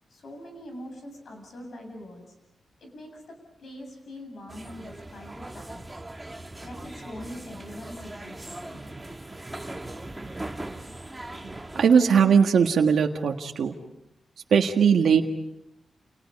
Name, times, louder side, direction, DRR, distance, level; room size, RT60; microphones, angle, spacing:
voice 1, 0.1-2.3 2.8-5.9 6.6-8.9, left 1 dB, 55° left, 4 dB, 7.7 m, -43 dB
sound 1, 4.5-11.9, right 1 dB, 10° right, 1.4 m, -39 dB
voice 2, 11.7-13.7 14.5-15.2, right 6 dB, 85° right, 2 dB, 1.7 m, -19 dB
30.0 x 29.0 x 5.4 m, 0.86 s
wide cardioid pair, 180°, 0 cm